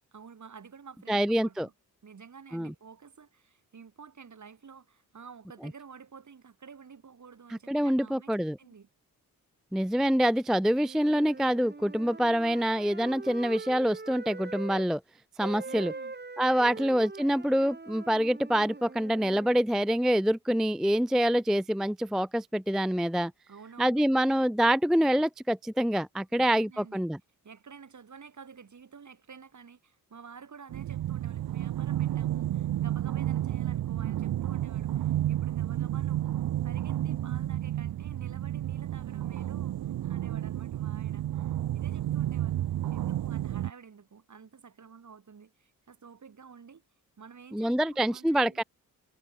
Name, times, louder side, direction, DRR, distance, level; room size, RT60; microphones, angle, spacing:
voice 1, 0.1-1.7 2.0-8.9 15.6-16.1 16.7-17.0 23.5-24.0 26.3-27.0 27.4-46.8 47.2-48.6, right 6 dB, 50° right, 5.6 m, -51 dB
voice 2, 1.1-1.7 2.5-2.7 7.7-8.6 9.7-15.0 15.4-15.9 16.4-23.3 23.8-27.2 47.5-48.6, equal, ahead, 0.3 m, -26 dB
sound 1, 10.8-14.9 15.4-19.6, right 3 dB, 25° right, 4.1 m, -43 dB
sound 2, 30.7-43.7, right 12 dB, 70° right, 0.8 m, -31 dB
cardioid pair, 65°, 37 cm